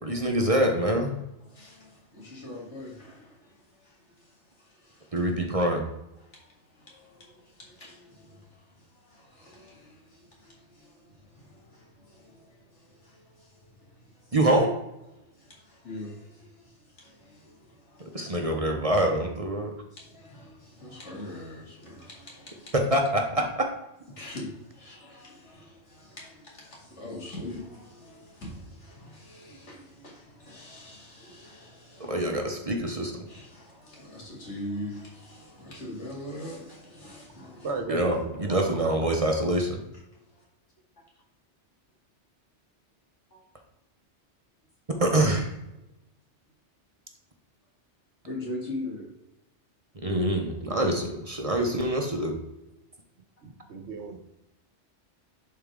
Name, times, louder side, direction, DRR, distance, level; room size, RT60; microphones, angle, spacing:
voice 1, 0.0-1.1 5.1-5.8 14.3-14.8 18.1-19.7 22.7-23.7 32.0-33.2 37.9-39.8 45.0-45.5 50.0-52.4, right 1 dB, 35° right, 2 dB, 0.9 m, -25 dB
voice 2, 1.4-5.3 6.2-14.4 15.1-18.4 19.9-23.0 24.1-32.2 32.8-32.9 33.3-37.7 40.3-40.4 43.3-43.4 48.3-49.1, left 1 dB, 75° left, -3 dB, 2.6 m, -43 dB
voice 3, 37.6-39.3 53.4-54.2, right 4 dB, 70° right, 5 dB, 1.3 m, -36 dB
11.0 x 4.4 x 3.6 m, 0.92 s
omnidirectional pair, 1.2 m